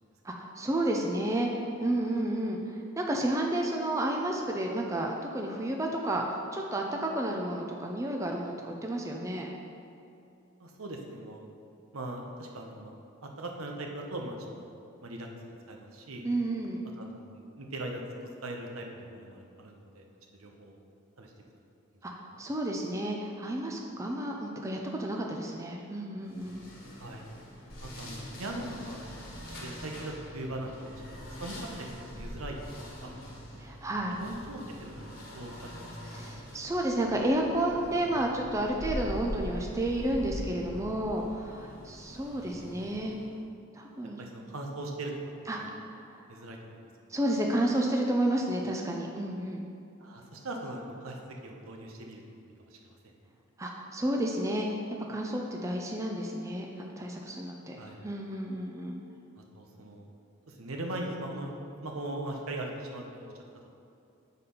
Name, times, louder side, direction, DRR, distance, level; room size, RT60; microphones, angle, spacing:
voice 1, 0.2-9.5 16.2-16.8 22.0-26.6 33.6-34.2 36.0-43.2 43.7-44.2 45.5-45.6 46.1-46.2 47.1-49.6 53.6-54.8 55.1-59.0, right 1 dB, 15° right, 0 dB, 0.4 m, -31 dB
voice 2, 10.6-11.4 11.9-12.9 13.2-14.7 15.0-16.3 17.0-18.0 18.4-20.1 20.4-20.8 21.2-21.5 22.0-22.4 27.0-27.2 27.8-29.0 29.6-30.9 31.4-33.7 34.2-36.0 44.2-45.1 45.5-45.7 46.3-46.8 50.0-52.4 52.7-53.0 57.8-58.0 59.5-60.0 60.5-61.5 61.8-63.3 63.6-63.7, right 1 dB, 80° right, 1 dB, 0.9 m, -40 dB
sound 1, 26.3-43.4, equal, 45° left, 1.4 m, -43 dB
8.3 x 4.1 x 5.4 m, 2.5 s
head